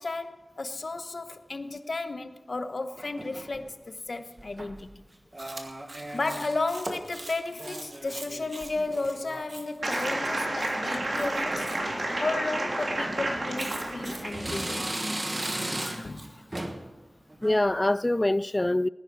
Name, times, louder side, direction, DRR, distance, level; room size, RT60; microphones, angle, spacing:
voice 1, 0.0-4.9 6.1-11.7 12.2-14.9 16.0-16.3, left 3 dB, 60° left, 1.1 m, -33 dB
sound 1, 3.0-3.7 4.4-4.9 5.3-6.6 6.9-7.2 7.5-9.5 9.8-10.3 10.8-11.2 11.5-11.6 12.5-12.7 13.3-14.0 14.3-16.2 16.5-16.9 17.3-17.6, right 1 dB, 30° right, 1.5 m, -37 dB
Chewing mastication, 5.4-11.8 13.5-16.3, right 2 dB, 50° right, 2.1 m, -44 dB
sound 2, 9.8-14.5, right 1 dB, 70° right, 3.3 m, -30 dB
voice 2, 15.4-16.1 17.4-18.9, left 1 dB, 25° left, 0.3 m, -26 dB
19.0 x 10.5 x 4.8 m
wide cardioid pair, 70°, 0 cm